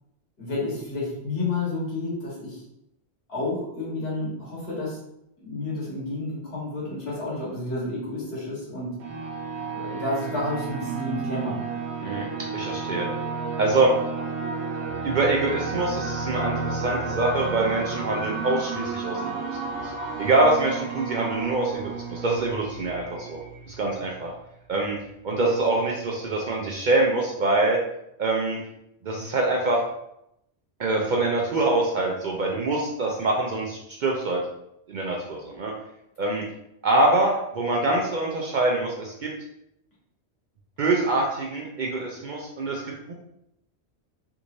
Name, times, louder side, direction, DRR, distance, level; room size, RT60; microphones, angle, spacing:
voice 1, 0.4-2.6 3.3-5.0 5.4-9.0 9.7-11.6, left 2 dB, 65° left, -6 dB, 1.6 m, -30 dB
sound 1, 9.0-24.3, right 4 dB, 90° right, 0.9 m, -32 dB
voice 2, 12.0-13.1 13.6-13.9 15.0-19.4 19.7-19.9 20.2-23.4 23.7-24.3 24.7-25.0 25.2-27.8 28.2-28.6 29.0-29.8 30.8-34.4 34.9-35.7 36.2-36.4 36.8-39.3 40.8-43.1, right 2 dB, 55° right, -1 dB, 0.5 m, -24 dB
3.5 x 3.1 x 2.6 m, 0.80 s
omnidirectional pair, 1.1 m